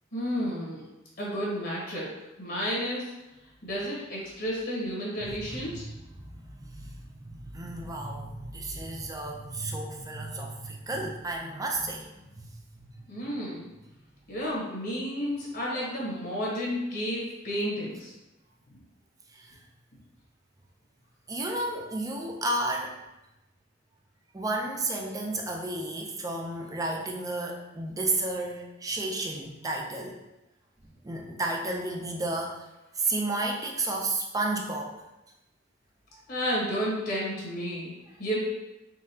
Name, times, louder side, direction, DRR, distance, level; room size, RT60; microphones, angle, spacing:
voice 1, 0.1-0.8 1.2-2.1 2.4-3.1 3.6-5.9 13.1-13.7 14.3-18.1 36.3-37.9 38.2-38.4, equal, 55° left, -4 dB, 1.1 m, -31 dB
voice 2, 5.2-5.8 6.2-12.5 12.7-12.9 19.3-19.5 21.3-23.0 24.3-30.2 31.0-32.6 33.0-35.0, right 2 dB, 20° right, 0 dB, 0.5 m, -32 dB
3.9 x 3.6 x 2.8 m, 0.96 s
head